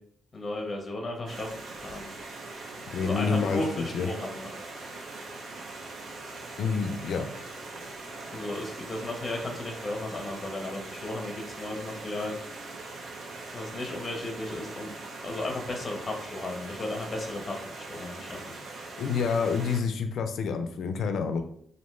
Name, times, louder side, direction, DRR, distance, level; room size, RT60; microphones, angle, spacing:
voice 1, 0.3-1.5 1.8-2.1 3.0-4.5 8.3-12.3 13.5-14.9 15.2-17.6 17.9-18.4, left 2 dB, 35° left, 1 dB, 0.6 m, -34 dB
Stream, 1.3-19.8, right 2 dB, 80° right, 0.5 m, -41 dB
voice 2, 2.9-4.1 6.6-7.3 19.0-21.4, left 5 dB, 80° left, 7 dB, 0.3 m, -28 dB
2.5 x 2.1 x 3.0 m, 0.64 s
cardioid pair, 95°, 0 cm